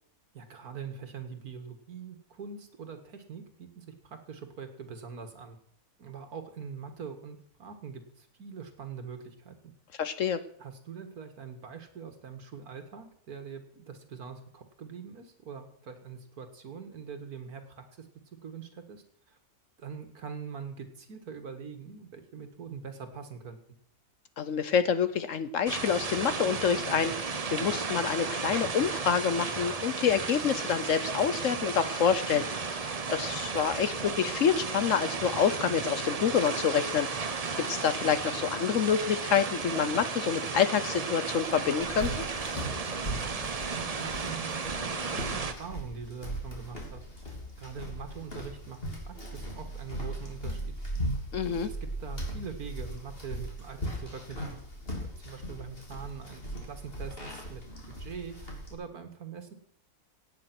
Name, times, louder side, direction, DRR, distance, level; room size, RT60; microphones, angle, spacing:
voice 1, 0.3-5.6 6.0-9.7 10.6-18.1 18.4-19.4 19.8-23.6 43.0-48.8 49.1-50.7 51.5-54.6 55.0-59.5, right 6 dB, 70° right, 7 dB, 2.1 m, -43 dB
voice 2, 10.0-10.4 24.4-37.1 37.6-42.1 51.3-51.7, left 7 dB, 60° left, 13 dB, 1.0 m, -27 dB
sound 1, 25.7-45.5, right 4 dB, 35° right, 0.7 m, -34 dB
sound 2, 41.8-58.7, right 1 dB, 35° left, 3.4 m, -38 dB
17.5 x 8.8 x 6.0 m, 0.64 s
omnidirectional pair, 1.6 m